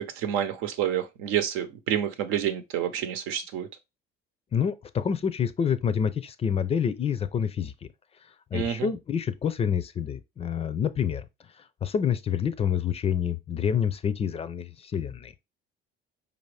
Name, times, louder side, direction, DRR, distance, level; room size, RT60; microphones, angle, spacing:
voice 1, 0.0-3.7 8.5-8.9, right 10 dB, 85° right, 0.8 m, -28 dB
voice 2, 4.5-7.9 8.5-11.2 11.6-15.3, left 7 dB, 30° left, 0.4 m, -27 dB
5.1 x 2.7 x 3.2 m
cardioid pair, 120°, 21 cm